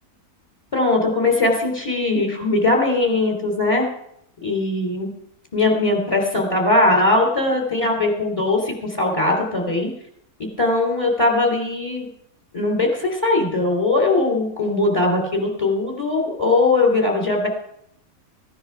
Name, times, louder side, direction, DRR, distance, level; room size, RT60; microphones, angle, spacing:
voice 1, 0.7-3.9 4.4-5.1 5.5-9.9 10.4-12.1 12.5-17.5, left 2 dB, 20° left, 1 dB, 3.4 m, -20 dB
15.5 x 10.0 x 5.8 m, 0.75 s
omnidirectional pair, 1.5 m